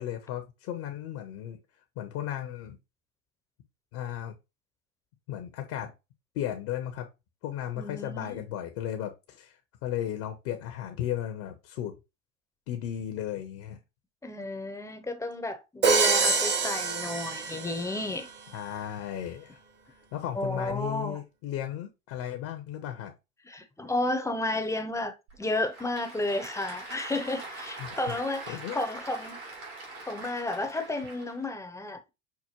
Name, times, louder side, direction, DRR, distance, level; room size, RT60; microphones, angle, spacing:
voice 1, 0.0-1.6 2.0-2.8 3.9-4.3 5.3-5.9 6.3-7.1 7.4-11.9 12.7-13.8 18.5-19.6 19.9-23.1 27.8-28.1 28.5-28.8, left 11 dB, 55° left, 0.8 m, -35 dB
voice 2, 7.8-8.4 14.2-18.3 20.3-21.2 23.4-29.4 30.0-32.1, left 2 dB, 10° left, 0.6 m, -32 dB
Crash cymbal, 15.8-18.0, right 4 dB, 30° right, 0.8 m, -26 dB
Applause / Crowd, 25.3-31.5, right 2 dB, 80° right, 2.5 m, -43 dB
5.8 x 2.1 x 2.9 m
hypercardioid pair, 85°, 39 cm